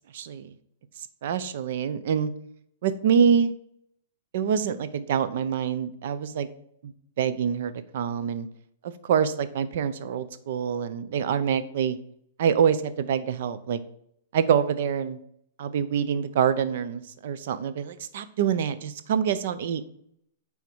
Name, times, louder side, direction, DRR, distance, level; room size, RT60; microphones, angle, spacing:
voice 1, 0.1-0.5 1.2-2.3 2.8-3.5 4.3-6.5 6.8-6.9 7.2-8.5 8.8-12.0 12.4-13.8 14.3-15.2 15.6-19.8, right 7 dB, 50° right, 12 dB, 0.6 m, -25 dB
9.2 x 3.6 x 4.6 m, 0.72 s
hypercardioid pair, 170°, 0 cm